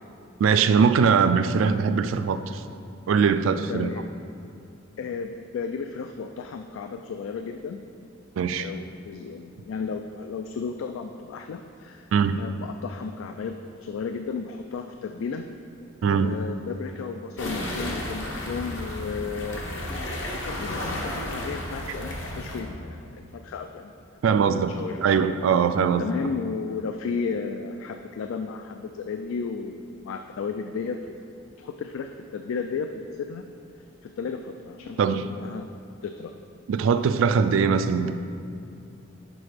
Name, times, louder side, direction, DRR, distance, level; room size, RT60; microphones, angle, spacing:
voice 1, 0.4-2.6 3.1-3.9 8.4-8.7 12.1-12.4 16.0-16.3 24.2-24.7 25.0-26.1 35.0-35.2 36.7-38.2, right 6 dB, 75° right, 11 dB, 0.3 m, -21 dB
voice 2, 3.7-4.1 5.0-7.8 8.5-12.1 12.4-15.5 16.0-19.6 20.3-24.5 24.7-25.1 26.0-31.2 31.6-33.4 34.0-35.0 35.2-35.7 36.0-36.3, left 5 dB, 85° left, 6 dB, 0.3 m, -34 dB
sound 1, 17.4-22.6, left 1 dB, 65° left, 0.9 m, -32 dB
6.1 x 4.8 x 5.0 m, 2.5 s
head